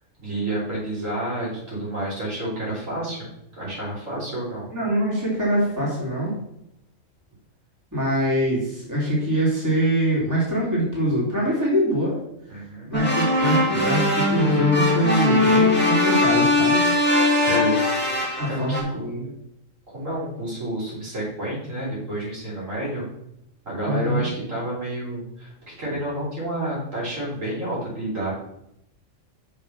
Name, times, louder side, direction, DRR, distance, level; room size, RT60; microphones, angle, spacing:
voice 1, 0.2-3.3 3.6-4.7 12.5-12.9 17.3-18.1 18.4-18.8 19.9-23.1 23.7-28.3, right 1 dB, 75° right, -6 dB, 4.4 m, -29 dB
voice 2, 4.7-6.4 7.9-12.1 12.9-16.9 18.4-19.3 23.8-24.3, equal, 15° right, -6 dB, 3.0 m, -23 dB
sound 1, 12.9-18.8, left 2 dB, 10° left, 2.3 m, -20 dB
6.4 x 5.7 x 6.1 m, 0.80 s
omnidirectional pair, 1.3 m